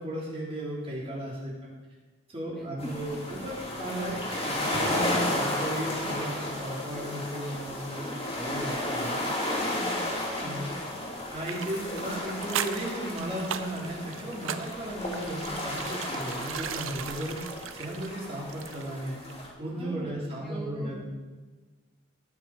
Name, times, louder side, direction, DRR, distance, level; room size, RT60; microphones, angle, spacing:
voice 1, 0.0-1.5 2.3-9.2 10.4-10.7 11.3-17.4 17.7-19.2 19.6-21.0, right 1 dB, 30° right, -5 dB, 3.7 m, -35 dB
voice 2, 2.5-2.9 3.9-4.1 9.6-10.9 19.7-21.0, right 1 dB, ahead, -2 dB, 1.0 m, -42 dB
sound 1, 2.8-19.5, left 1 dB, 30° left, 3.0 m, -33 dB
sound 2, 11.4-19.0 19.3-19.4, right 8 dB, 80° right, 0.6 m, -38 dB
19.5 x 6.7 x 5.0 m, 1.3 s
head